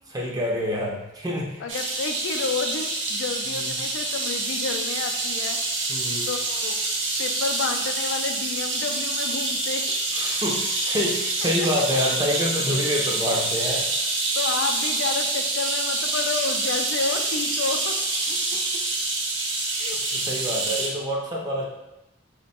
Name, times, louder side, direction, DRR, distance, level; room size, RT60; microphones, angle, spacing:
voice 1, 0.1-1.6 3.5-3.7 5.9-6.3 10.1-14.0 18.3-18.4 20.1-21.7, left 1 dB, 20° right, -3 dB, 0.6 m, -27 dB
voice 2, 1.6-5.6 6.3-6.8 7.2-9.8 14.3-17.9 19.8-20.0, left 4 dB, 75° left, 4 dB, 0.3 m, -30 dB
sound 1, 1.7-20.9, right 2 dB, 65° right, 0.6 m, -26 dB
2.9 x 2.1 x 4.2 m, 0.92 s
head